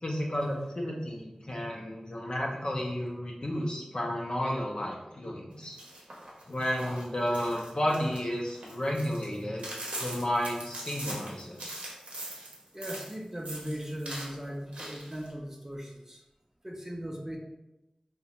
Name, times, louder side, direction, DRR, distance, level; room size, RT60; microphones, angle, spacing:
voice 1, 0.0-5.8 6.5-9.7 10.0-11.8, equal, 45° left, -1 dB, 0.5 m, -32 dB
sound 1, 5.6-13.1 13.4-14.3 14.7-15.3, right 1 dB, 80° right, 0.7 m, -41 dB
voice 2, 12.7-16.2 16.6-17.4, equal, 20° right, -1 dB, 0.4 m, -38 dB
2.4 x 2.1 x 2.8 m, 0.95 s
wide cardioid pair, 50°, 2 cm